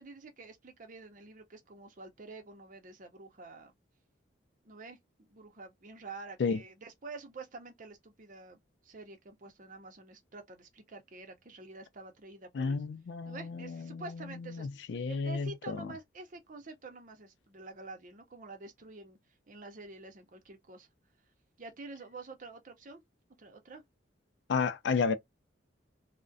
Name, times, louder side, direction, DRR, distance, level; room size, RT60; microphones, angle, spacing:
voice 1, 0.0-3.7 4.6-12.8 13.3-14.7 15.1-19.2 19.5-20.9 21.6-23.0 23.4-23.8, right 3 dB, 45° right, 0.6 m, -48 dB
voice 2, 12.5-15.8 24.5-25.1, left 5 dB, 65° left, 0.3 m, -32 dB
2.4 x 2.1 x 2.5 m
head